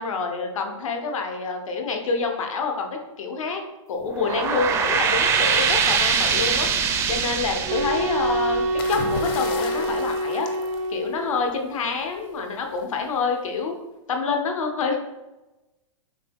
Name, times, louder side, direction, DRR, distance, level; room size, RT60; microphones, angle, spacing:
voice 1, 0.0-2.9 3.2-3.6 3.9-6.7 7.1-10.5 10.9-13.8 14.1-15.0, left 4 dB, 80° left, 3 dB, 0.9 m, -27 dB
sound 1, 4.0-9.3, right 6 dB, 15° right, 0.4 m, -23 dB
sound 2, 7.6-11.6, right 1 dB, 70° right, 0.6 m, -26 dB
sound 3, 8.8-11.5 12.8-13.1, left 6 dB, 45° left, 0.5 m, -36 dB
6.3 x 2.3 x 3.5 m, 1.0 s
hypercardioid pair, 140°, 17 cm